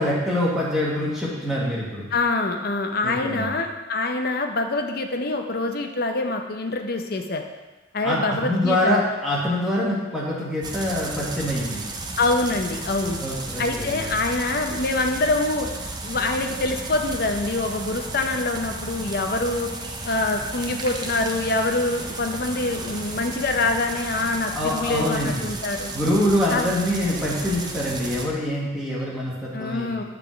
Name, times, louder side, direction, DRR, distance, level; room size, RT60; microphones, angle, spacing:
voice 1, 0.0-2.1 3.0-3.5 8.0-11.8 13.2-14.1 24.5-25.5 25.9-30.0, left 1 dB, ahead, -6 dB, 1.3 m, -25 dB
voice 2, 2.1-7.4 7.9-9.0 12.2-13.2 13.6-15.7 16.0-19.7 20.0-25.9 26.5-26.7 29.5-30.0, left 2 dB, 50° left, 4 dB, 0.6 m, -25 dB
sound 1, 10.6-28.3, right 2 dB, 20° right, 0.5 m, -34 dB
7.0 x 3.5 x 6.1 m, 1.2 s
head